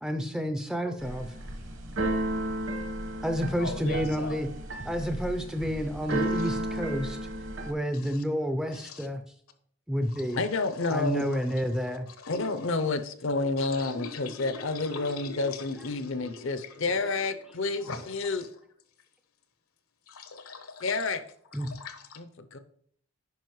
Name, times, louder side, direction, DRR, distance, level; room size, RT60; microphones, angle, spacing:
voice 1, 0.0-1.3 3.2-4.5 4.8-7.2 7.6-9.2 9.9-10.4 10.9-12.1 21.5-21.7, equal, 5° right, 7 dB, 0.4 m, -30 dB
Keyboard (musical), 1.0-7.7, right 1 dB, 60° right, 1.1 m, -33 dB
voice 2, 3.6-4.4 6.2-6.5 8.7-9.1 12.2-12.9 13.7-16.5 17.8-18.0 20.1-20.9 21.6-22.2, left 4 dB, 75° left, 8 dB, 0.9 m, -41 dB
voice 3, 10.4-11.3 12.3-18.5 20.8-21.2 22.2-22.6, left 3 dB, 60° left, 12 dB, 0.6 m, -30 dB
9.3 x 5.5 x 3.1 m, 0.63 s
head